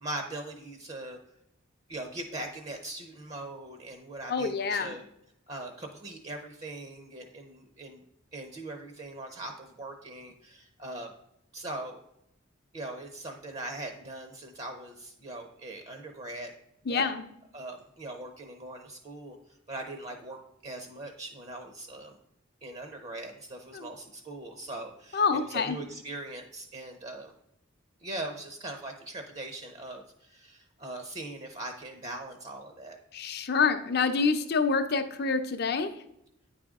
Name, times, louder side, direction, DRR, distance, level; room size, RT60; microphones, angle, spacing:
voice 1, 0.0-1.2 1.9-5.0 5.5-8.0 8.3-11.1 11.5-12.0 12.7-16.5 16.9-17.1 17.5-19.4 19.7-22.2 22.6-27.3 28.0-33.0, right 2 dB, 35° right, 5 dB, 0.6 m, -41 dB
voice 2, 4.3-4.9 16.9-17.2 23.7-23.9 25.1-25.8 33.1-35.9, left 5 dB, 55° left, 8 dB, 0.6 m, -27 dB
9.3 x 4.9 x 3.6 m, 0.80 s
head